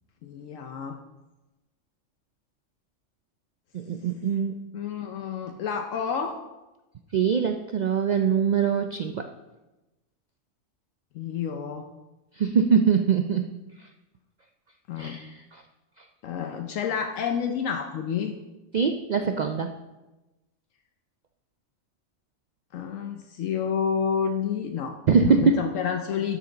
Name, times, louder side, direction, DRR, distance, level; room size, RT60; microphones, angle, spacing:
voice 1, 0.2-1.0 4.7-6.4 11.1-11.9 14.9-15.2 16.2-18.4 22.7-26.4, left 7 dB, 80° left, 4 dB, 1.0 m, -29 dB
voice 2, 3.7-4.5 7.1-9.2 12.4-13.5 15.0-15.6 18.7-19.7 25.1-25.6, right 6 dB, 80° right, 6 dB, 0.3 m, -23 dB
12.5 x 5.6 x 3.9 m, 1.1 s
omnidirectional pair, 1.3 m